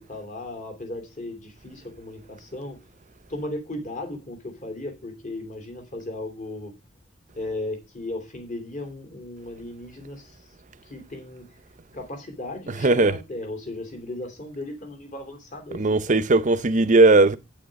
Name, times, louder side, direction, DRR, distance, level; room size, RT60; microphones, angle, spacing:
voice 1, 0.0-2.8 3.3-6.7 7.3-10.4 10.9-11.6 11.9-15.8 16.1-16.3, left 2 dB, 40° left, 2.9 m, -36 dB
voice 2, 12.8-13.1 15.7-17.4, right 3 dB, 40° right, 0.6 m, -18 dB
8.8 x 8.6 x 5.2 m
head